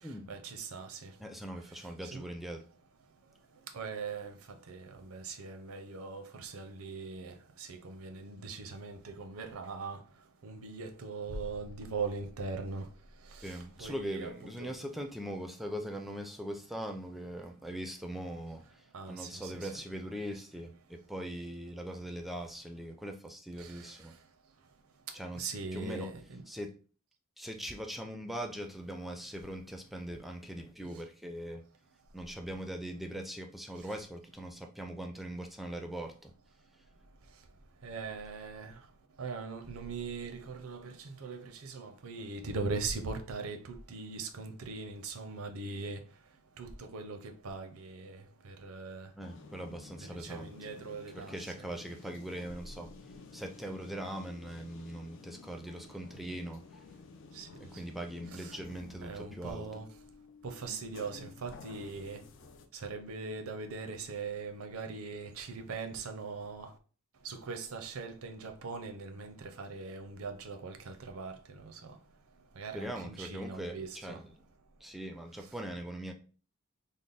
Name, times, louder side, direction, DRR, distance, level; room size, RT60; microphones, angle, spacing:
voice 1, 0.3-1.1 2.0-2.2 3.7-4.3 4.7-10.0 10.4-12.8 13.4-13.5 13.8-14.3 14.6-14.8 18.9-19.7 23.6-23.7 25.3-26.4 37.8-38.8 39.2-46.0 46.6-47.2 47.4-49.1 50.1-51.7 57.4-57.5 58.3-58.5 59.0-59.9 60.4-62.2 62.8-66.7 67.2-72.0 72.6-74.2, right 4 dB, 80° right, 0.6 m, -40 dB
voice 2, 1.2-2.6 13.4-24.1 25.1-26.1 26.5-26.7 27.4-31.6 32.1-36.3 49.2-50.5 51.1-52.9 53.3-56.6 57.7-59.7 72.7-74.3 74.8-76.1, right 1 dB, ahead, 0.4 m, -41 dB
sound 1, 49.2-62.7, left 4 dB, 65° left, 0.5 m, -52 dB
3.4 x 2.0 x 3.9 m
head